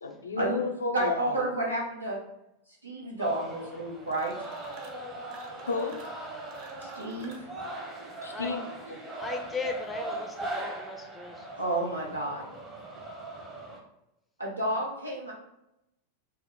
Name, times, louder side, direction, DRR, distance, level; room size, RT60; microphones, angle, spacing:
voice 1, 0.0-1.4 5.6-6.0 8.2-8.6 8.9-9.0, left 4 dB, 75° left, 3 dB, 0.5 m, -32 dB
voice 2, 0.9-2.2 2.8-4.3 6.8-7.5 11.6-12.5 14.4-15.3, right 1 dB, 80° right, -2 dB, 1.0 m, -31 dB
sound 1, 3.2-13.8, right 2 dB, 20° right, 0.9 m, -40 dB
sound 2, 4.0-5.0 5.3-7.5, right 3 dB, 45° right, 0.7 m, -52 dB
voice 3, 9.2-11.5, left 4 dB, 10° left, 4 dB, 0.5 m, -37 dB
4.4 x 2.1 x 3.8 m, 0.86 s
figure-of-eight pair, 90°, 0 cm